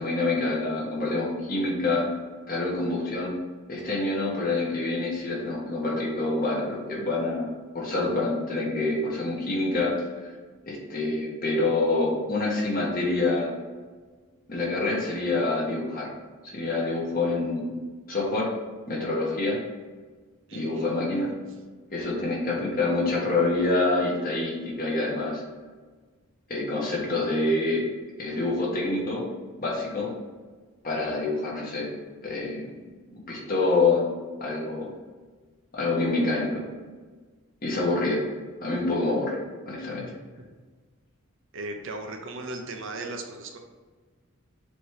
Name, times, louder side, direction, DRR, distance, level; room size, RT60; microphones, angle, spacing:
voice 1, 0.0-2.0 2.5-3.3 3.7-7.5 7.7-9.9 10.7-13.5 14.5-16.1 16.4-17.7 18.1-18.5 18.9-19.6 20.5-21.3 21.9-25.4 26.5-27.8 28.2-29.2 29.6-30.1 30.8-31.9 32.2-32.7 33.3-34.1 34.4-34.9 35.7-36.6 37.6-38.2 38.6-39.4 39.6-40.0, left 2 dB, 40° left, -4 dB, 1.6 m, -26 dB
voice 2, 20.5-21.4 40.0-40.1 41.5-43.6, right 2 dB, 55° right, 3 dB, 0.8 m, -37 dB
7.0 x 3.1 x 5.0 m, 1.4 s
head